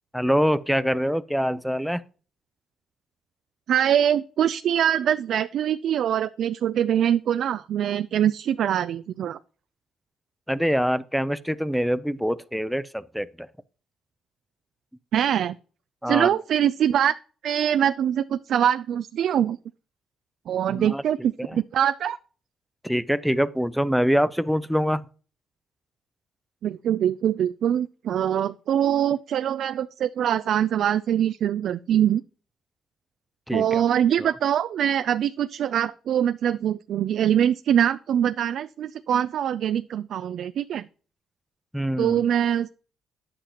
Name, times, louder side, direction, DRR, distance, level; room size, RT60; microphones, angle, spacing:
voice 1, 0.1-2.0 10.5-13.5 16.0-16.3 20.7-21.0 21.4-21.6 22.8-25.0 33.5-33.8 41.7-42.2, equal, ahead, 0.5 m, -24 dB
voice 2, 3.7-9.4 15.1-15.6 16.1-17.1 17.4-19.6 20.5-22.2 26.6-32.2 33.5-40.9 42.0-42.7, right 10 dB, 70° right, 0.3 m, -23 dB
9.9 x 7.7 x 2.9 m
cardioid pair, 90°, 0 cm